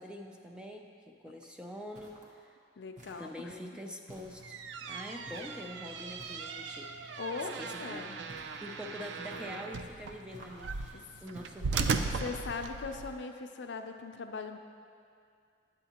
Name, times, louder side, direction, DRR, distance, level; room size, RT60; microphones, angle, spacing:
voice 1, 0.0-2.6 3.2-4.6 4.9-8.2 8.6-12.0, equal, 5° right, 1 dB, 0.4 m, -45 dB
sound 1, 1.9-2.4 3.0-3.5 4.1-4.7 5.3-5.7 6.2-6.7 8.3-8.8 9.3-9.8 10.3-10.8 11.3-11.8 12.3-12.8, equal, 45° right, 0.9 m, -54 dB
voice 2, 2.8-3.3 4.9-5.0 7.2-8.2 10.9-11.0 12.2-14.6, left 4 dB, 80° left, 6 dB, 0.5 m, -40 dB
sound 2, 4.3-13.1, right 4 dB, 80° right, 0.4 m, -37 dB
9.0 x 7.8 x 2.9 m, 2.3 s
head